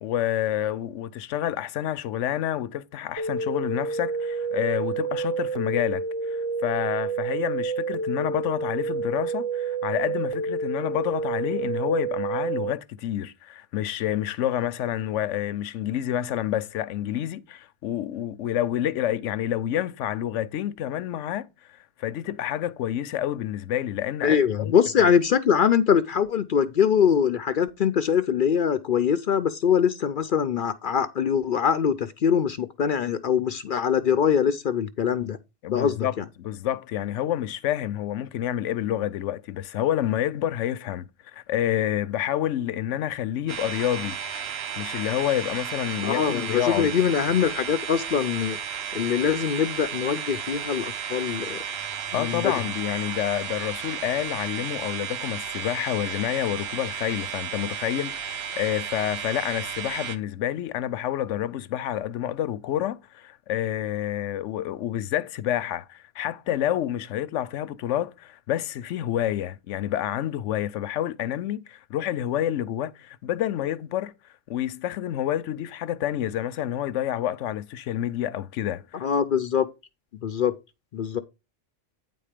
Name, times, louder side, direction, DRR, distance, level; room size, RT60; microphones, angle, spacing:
voice 1, 0.0-21.5 22.0-25.1 35.6-44.2 44.8-46.9 52.1-74.1 74.5-79.1, left 11 dB, 80° left, 0.9 m, -28 dB
sound 1, 3.2-12.7, right 4 dB, 40° right, 0.5 m, -29 dB
voice 2, 24.2-35.4 35.7-36.2 46.0-48.6 48.9-51.6 52.1-52.5 78.9-79.7 80.2-80.5 80.9-81.2, left 7 dB, 60° left, 0.6 m, -23 dB
sound 2, 43.5-60.2, right 7 dB, 60° right, 1.0 m, -33 dB
9.3 x 4.4 x 5.0 m
omnidirectional pair, 1.3 m